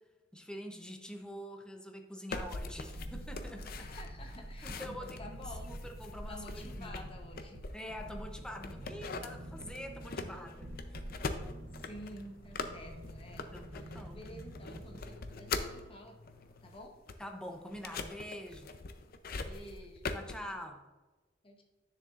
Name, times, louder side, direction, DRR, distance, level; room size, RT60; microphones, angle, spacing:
voice 1, 0.3-3.9 4.6-7.0 7.7-11.0 13.5-14.3 17.2-18.8 20.1-20.8, equal, 5° left, 4 dB, 0.7 m, -45 dB
sound 1, 2.3-8.2 8.6-15.8 16.3-20.4, left 4 dB, 55° left, 0.6 m, -42 dB
sound 2, 2.8-15.1 15.4-15.5, right 1 dB, 70° right, 0.8 m, -47 dB
voice 2, 3.8-5.7 6.3-7.6 11.8-13.5 13.9-16.2 16.6-17.0 19.4-20.1 21.4-21.6, left 1 dB, 30° left, 2 dB, 1.0 m, -50 dB
sound 3, 6.1-16.7, equal, 80° left, 2.5 m, -59 dB
9.9 x 6.9 x 2.5 m, 1.2 s
head